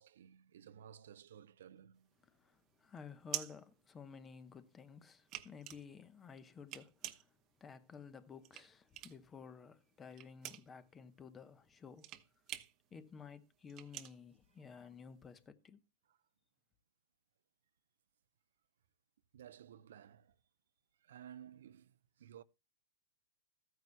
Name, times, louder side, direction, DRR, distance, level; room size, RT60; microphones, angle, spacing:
voice 1, 0.0-2.1 19.3-20.4 21.0-22.4, right 9 dB, 70° right, 0.6 m, -56 dB
sound 1, 2.0-4.6 4.9-9.4 9.7-15.2, right 14 dB, 35° right, 0.9 m, -47 dB
voice 2, 2.3-12.1 12.9-15.8, left 6 dB, 20° left, 0.9 m, -54 dB
14.0 x 9.3 x 2.2 m
hypercardioid pair, 115°, 0 cm